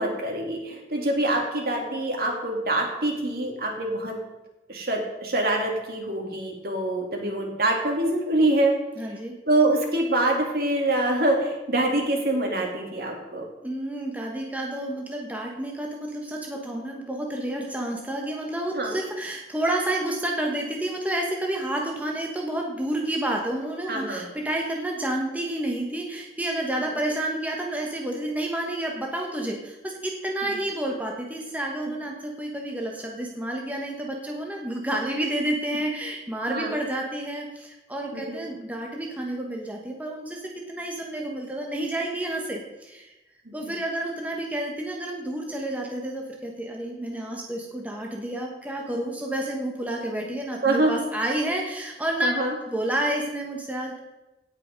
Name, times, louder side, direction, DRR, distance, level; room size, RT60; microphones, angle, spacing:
voice 1, 0.0-4.2 4.7-8.7 9.4-13.4 18.7-19.0 23.9-24.3 36.5-36.7 38.1-38.4 43.4-43.7 50.6-50.9 52.2-52.5, right 2 dB, 60° right, 1 dB, 2.6 m, -25 dB
voice 2, 9.0-9.3 13.6-43.1 43.5-52.3 52.7-54.0, right 1 dB, 10° right, 0 dB, 1.3 m, -30 dB
17.0 x 5.7 x 5.3 m, 1.0 s
head